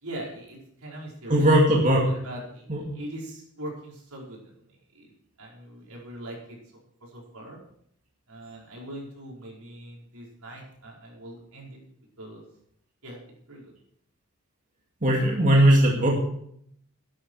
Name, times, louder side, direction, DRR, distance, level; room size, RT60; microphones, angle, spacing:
voice 1, 0.0-1.5 1.9-4.4 4.6-5.1 5.4-6.6 7.0-7.6 8.3-11.8 12.2-12.4 13.0-13.2 13.5-13.7, right 1 dB, 85° right, -3 dB, 5.2 m, -41 dB
voice 2, 1.3-2.0 2.7-2.8 15.0-16.2, right 1 dB, 35° right, -2 dB, 2.4 m, -19 dB
14.0 x 11.0 x 4.8 m, 0.69 s
head